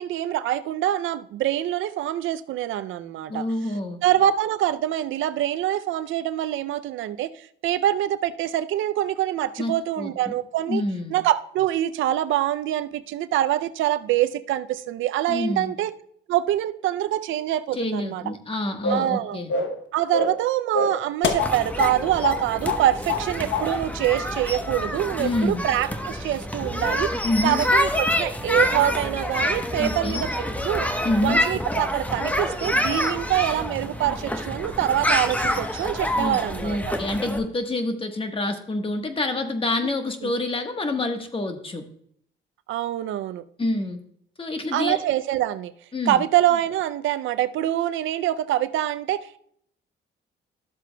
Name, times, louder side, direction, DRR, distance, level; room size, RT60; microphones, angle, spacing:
voice 1, 0.0-3.5 4.0-10.8 11.1-15.9 16.3-18.3 18.9-19.4 19.9-27.1 27.4-30.9 31.2-36.9 40.2-40.3 42.7-43.4 44.7-45.7 46.1-49.4, right 12 dB, 75° right, 0.4 m, -25 dB
voice 2, 3.3-4.0 9.6-10.3 10.7-11.1 15.3-15.7 17.7-19.5 25.2-25.6 27.2-27.6 29.8-30.2 31.0-31.4 36.2-41.8 43.6-44.0 44.4-45.0 45.9-46.2, left 2 dB, 25° left, 1.2 m, -27 dB
sound 1, 18.8-19.1 19.5-19.8 20.1-20.4 20.7-22.0 22.2-22.4 22.7-23.3 23.5-23.7, left 3 dB, 70° left, 0.9 m, -25 dB
sound 2, 21.4-37.4, left 1 dB, 5° left, 0.9 m, -27 dB
13.0 x 7.4 x 2.2 m
cardioid pair, 90°, 20 cm